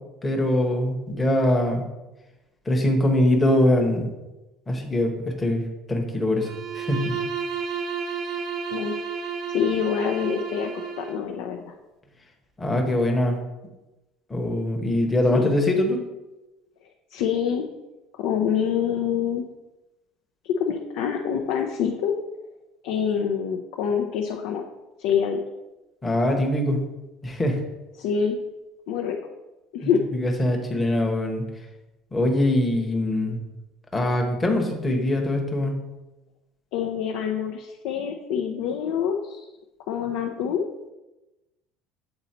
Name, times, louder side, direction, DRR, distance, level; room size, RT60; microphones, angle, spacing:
voice 1, 0.2-1.8 2.7-4.1 4.7-5.1 5.4-5.6 5.9-6.5 6.7-7.1 12.6-13.4 14.3-16.0 26.0-26.8 27.2-27.6 30.1-31.4 32.1-33.4 33.9-35.8, left 1 dB, 10° left, 1 dB, 1.0 m, -22 dB
Bowed string instrument, 6.4-11.3, right 6 dB, 40° right, 0.7 m, -31 dB
voice 2, 9.5-10.7 11.0-11.7 15.3-15.5 17.1-17.7 18.2-19.4 20.6-22.2 22.8-24.6 25.0-25.4 28.0-28.4 28.9-29.2 29.7-30.0 36.7-39.4 39.9-40.9, left 7 dB, 70° left, 2 dB, 0.6 m, -26 dB
7.8 x 4.0 x 4.3 m, 1.0 s
cardioid pair, 150°, 0 cm